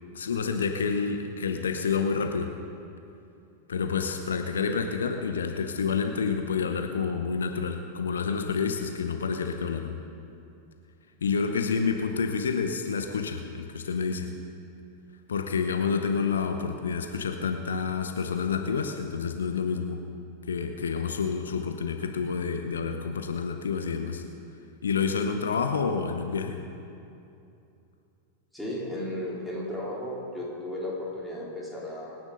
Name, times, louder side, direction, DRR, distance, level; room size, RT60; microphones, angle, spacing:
voice 1, 0.1-2.5 3.7-9.9 11.2-14.3 15.3-20.0 20.5-24.2 24.8-26.6, left 5 dB, 70° left, 6 dB, 0.9 m, -28 dB
voice 2, 28.5-32.2, left 1 dB, ahead, -6 dB, 3.9 m, -34 dB
25.0 x 10.0 x 4.0 m, 2.6 s
figure-of-eight pair, 90°, 0 cm